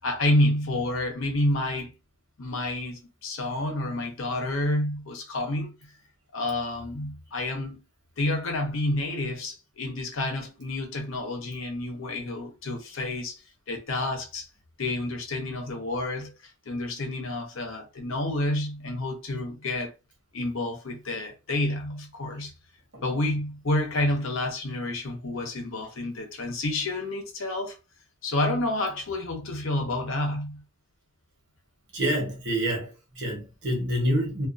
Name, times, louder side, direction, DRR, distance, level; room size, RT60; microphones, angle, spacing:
voice 1, 0.0-1.9 2.4-5.7 6.3-7.8 8.2-13.4 13.7-14.5 14.8-16.3 16.7-19.9 20.3-22.5 23.0-27.8 28.2-30.6, left 1 dB, 75° left, 0.8 m, -29 dB
voice 2, 31.9-34.5, equal, 60° right, 1.0 m, -27 dB
2.4 x 2.4 x 2.5 m
head